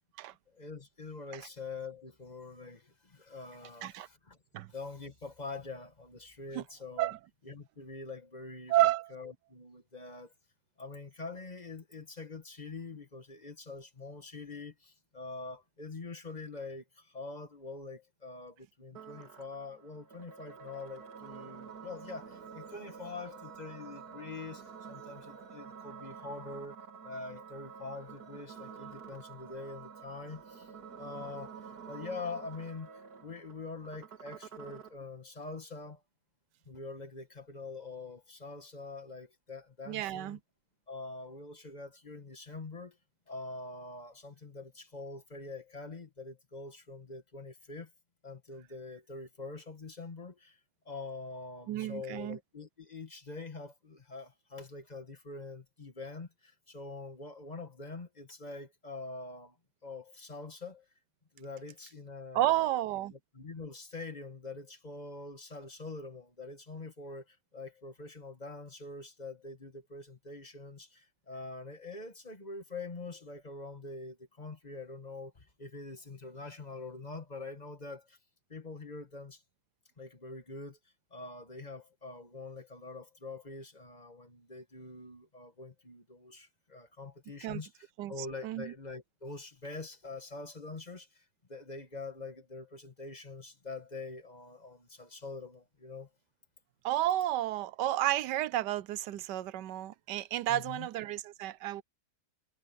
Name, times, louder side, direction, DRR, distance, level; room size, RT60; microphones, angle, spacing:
voice 1, 0.5-4.4 4.7-7.1 7.4-10.3 10.8-26.8 27.0-30.7 31.0-32.9 33.2-36.0 36.6-40.4 40.9-43.0 43.3-47.9 48.2-50.6 50.8-59.6 59.8-60.9 61.3-62.8 63.1-78.2 78.5-79.4 80.0-80.8 81.1-96.1 100.5-100.9, left 3 dB, 25° left, 1.6 m, -45 dB
voice 2, 8.7-9.1 39.9-40.4 51.7-52.4 62.3-63.1 87.4-87.6 88.0-88.1 88.4-88.7 96.8-101.8, right 14 dB, 85° right, 1.3 m, -31 dB
sound 1, 18.9-34.9, right 6 dB, 65° right, 2.6 m, -49 dB
omnidirectional pair, 1.8 m